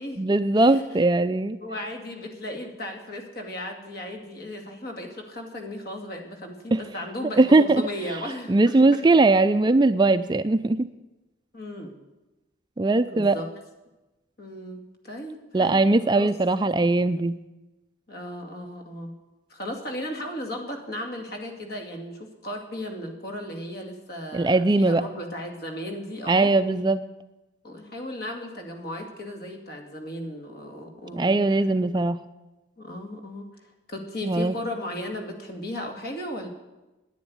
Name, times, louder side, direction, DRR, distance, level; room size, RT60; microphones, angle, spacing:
voice 1, 0.2-1.6 6.7-6.8 7.4-7.8 8.5-10.9 12.8-13.4 15.5-17.4 24.3-25.0 26.3-27.0 31.1-32.2 34.2-34.6, right 2 dB, 20° right, 11 dB, 0.4 m, -20 dB
voice 2, 1.6-8.8 11.5-11.9 13.1-13.5 14.4-16.3 18.1-19.1 19.5-26.5 27.6-31.4 32.8-33.5 33.9-36.5, left 1 dB, 50° left, 3 dB, 2.3 m, -36 dB
10.5 x 10.0 x 9.6 m, 1.0 s
head